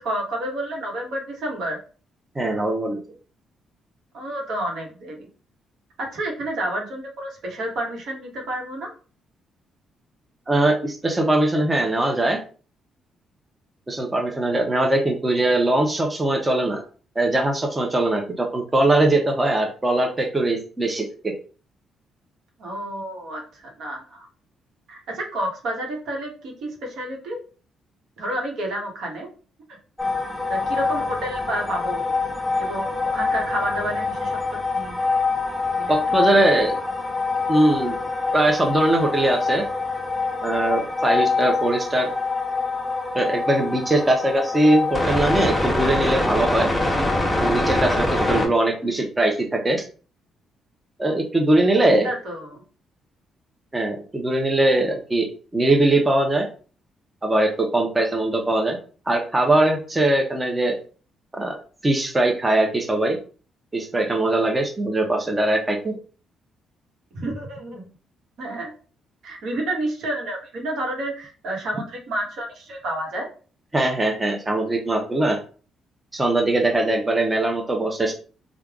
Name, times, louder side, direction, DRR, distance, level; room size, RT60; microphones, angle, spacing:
voice 1, 0.0-1.8 4.1-5.3 6.0-8.9 22.6-24.3 24.9-27.4 28.2-29.3 29.7-29.8 30.5-32.1 32.6-34.4 34.7-35.0 35.7-36.4 52.0-52.6 67.1-67.9 68.4-68.7 69.2-73.3, right 1 dB, 75° right, 0 dB, 1.3 m, -30 dB
voice 2, 2.3-3.0 10.5-12.4 13.9-16.8 17.1-21.3 35.9-36.8 37.5-38.0 38.3-39.7 40.4-42.1 43.1-46.7 47.3-49.8 51.0-52.1 53.7-55.3 55.5-56.5 57.2-58.8 59.1-60.7 61.3-61.6 61.8-63.2 63.7-66.0 73.7-75.4 76.1-78.1, right 2 dB, 20° right, 1 dB, 0.9 m, -21 dB
sound 1, 30.0-48.5, left 3 dB, 10° left, 1.3 m, -25 dB
3.4 x 2.5 x 3.6 m, 0.38 s
cardioid pair, 75°, 0 cm